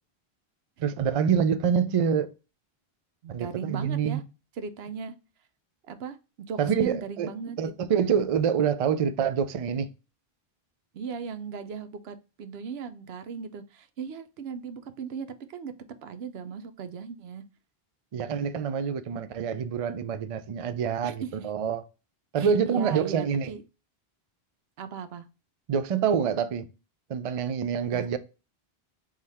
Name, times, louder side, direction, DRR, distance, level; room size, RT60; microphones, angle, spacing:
voice 1, 0.8-2.3 3.3-4.2 6.6-7.3 7.6-9.9 18.1-21.8 22.3-23.5 25.7-26.7 27.1-28.2, right 7 dB, 50° right, 0.4 m, -26 dB
voice 2, 3.2-4.2 4.6-5.1 5.9-7.6 10.9-15.7 16.0-17.4 21.0-21.5 22.4-23.6 24.8-25.2 27.9-28.2, right 6 dB, 80° right, 0.9 m, -37 dB
3.8 x 3.2 x 4.1 m
omnidirectional pair, 1.0 m